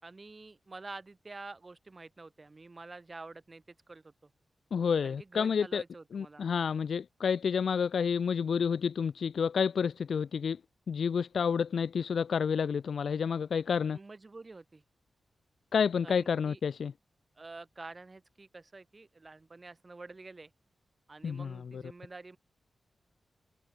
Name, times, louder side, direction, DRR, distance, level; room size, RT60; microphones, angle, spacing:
voice 1, 0.0-4.1 5.0-6.5 13.9-14.8 16.0-16.6 17.4-20.5 21.1-22.4, right 3 dB, 25° right, 6.4 m, -48 dB
voice 2, 4.7-5.8 6.1-10.6 10.9-14.0 15.7-16.9 21.2-21.8, left 6 dB, 70° left, 3.6 m, -29 dB
wide cardioid pair, 165°, 0 cm